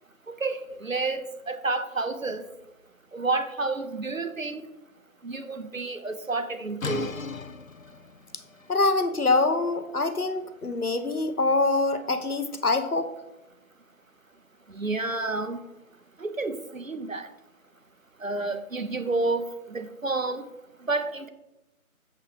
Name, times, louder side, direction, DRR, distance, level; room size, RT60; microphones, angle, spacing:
voice 1, 0.3-2.4 3.1-4.6 5.2-7.1 14.7-15.6 16.2-17.3 18.2-20.4 20.9-21.3, right 3 dB, 65° right, 10 dB, 1.1 m, -30 dB
sound 1, 6.8-12.4, left 4 dB, 65° left, 0.7 m, -40 dB
voice 2, 8.7-13.1, left 3 dB, 85° left, 9 dB, 1.2 m, -25 dB
7.5 x 7.1 x 4.8 m, 0.95 s
figure-of-eight pair, 175°, 44 cm